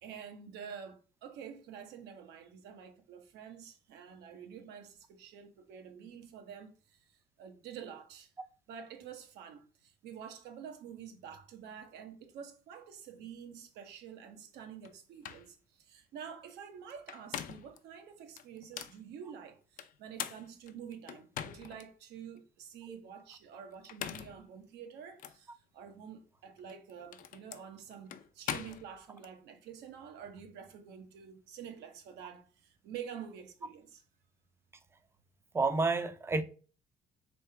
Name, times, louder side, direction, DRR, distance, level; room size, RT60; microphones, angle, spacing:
voice 1, 0.0-7.1 7.4-8.3 8.7-34.0, right 7 dB, 85° right, 0.9 m, -48 dB
sound 1, 14.8-14.9 15.2-15.5 16.9-17.8 18.4-19.0 19.8-21.9 22.4-22.5 23.7-24.4 25.2-25.4 26.6-29.3, left 9 dB, 55° left, 0.5 m, -42 dB
voice 2, 35.5-36.4, right 3 dB, 15° right, 0.4 m, -29 dB
3.3 x 2.8 x 4.4 m
cardioid pair, 110°, 17 cm